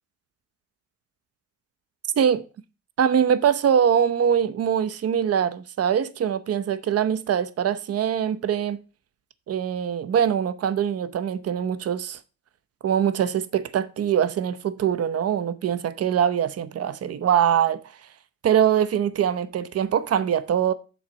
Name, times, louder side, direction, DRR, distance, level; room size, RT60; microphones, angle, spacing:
voice 1, 3.0-8.8 9.5-12.2 12.8-17.8 18.4-20.7, right 8 dB, 55° right, 0.8 m, -23 dB
7.6 x 4.0 x 6.1 m
cardioid pair, 90°, 30 cm